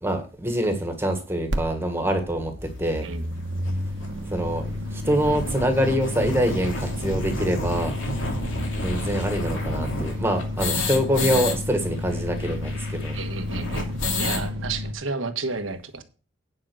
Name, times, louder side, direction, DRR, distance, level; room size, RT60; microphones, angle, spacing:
voice 1, 0.0-2.5 2.8-3.1 4.2-8.3 8.8-13.2, equal, 10° right, 5 dB, 1.6 m, -25 dB
sound 1, 1.5-1.6 1.9-14.9, left 1 dB, 55° right, 1.3 m, -31 dB
sound 2, 2.9-3.0 3.7-3.8 4.0-4.1 4.4-4.5 4.9-11.6 11.8-11.9 12.1-14.5, left 2 dB, 70° left, 2.7 m, -30 dB
voice 2, 13.1-13.9 14.2-16.0, right 3 dB, 75° right, 8 dB, 1.3 m, -31 dB
10.0 x 5.5 x 6.1 m, 0.36 s
head